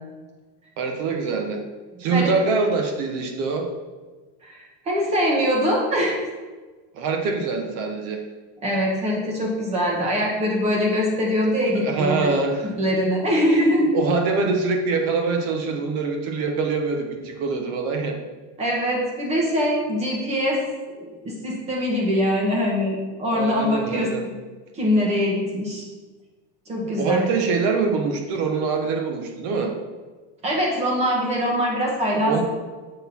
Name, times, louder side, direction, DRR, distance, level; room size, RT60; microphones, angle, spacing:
voice 1, 0.8-1.6 2.0-3.7 6.9-8.2 11.8-12.7 13.9-18.2 23.3-24.2 27.0-29.7 32.2-32.4, right 4 dB, 45° right, 4 dB, 1.0 m, -24 dB
voice 2, 1.9-2.3 4.4-6.2 8.6-12.3 12.6-13.9 18.6-20.6 20.9-24.4 24.7-25.8 26.7-27.3 30.4-32.4, equal, 20° right, -2 dB, 1.7 m, -23 dB
7.7 x 6.1 x 4.3 m, 1.3 s
cardioid pair, 175°, 34 cm